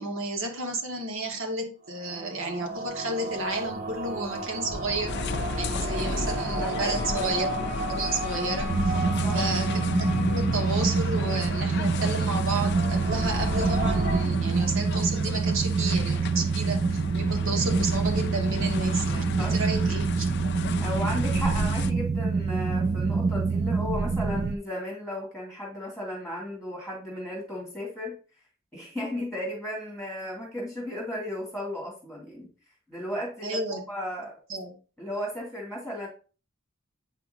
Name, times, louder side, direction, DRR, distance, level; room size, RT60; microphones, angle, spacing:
voice 1, 0.0-5.1 5.6-9.0 9.3-20.3 33.4-33.8 34.5-34.7, right 2 dB, 75° right, 3 dB, 1.7 m, -32 dB
sound 1, 1.9-14.2, right 1 dB, 50° right, 1.7 m, -33 dB
sound 2, 5.1-21.9, left 4 dB, 55° left, 0.5 m, -35 dB
voice 2, 6.6-7.2 9.0-9.5 19.3-19.5 20.8-28.2 28.7-32.5 32.9-34.3 35.0-36.1, left 1 dB, ahead, -4 dB, 2.3 m, -35 dB
sound 3, 8.7-24.6, right 4 dB, 35° right, 0.3 m, -26 dB
8.1 x 5.7 x 2.7 m, 0.36 s
head